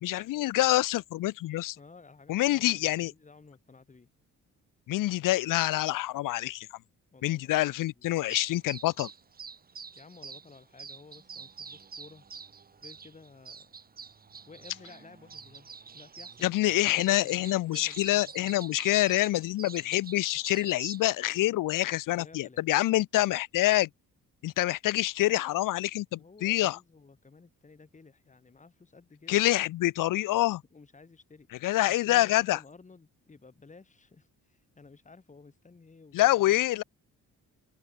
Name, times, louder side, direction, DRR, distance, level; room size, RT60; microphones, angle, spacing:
voice 1, 0.0-1.8 2.3-3.1 4.9-6.7 7.2-9.1 16.4-23.9 24.4-26.8 29.3-30.6 31.6-32.6 36.1-36.8, left 16 dB, 65° left, 0.5 m, -26 dB
voice 2, 1.7-4.1 7.1-8.1 9.9-12.3 12.8-13.7 14.5-18.6 22.2-22.7 26.1-29.4 30.7-31.5 31.9-36.6, left 4 dB, 20° left, 7.8 m, -54 dB
sound 1, 8.3-21.1, right 5 dB, 25° right, 1.5 m, -47 dB
open air
wide cardioid pair, 175°, 35 cm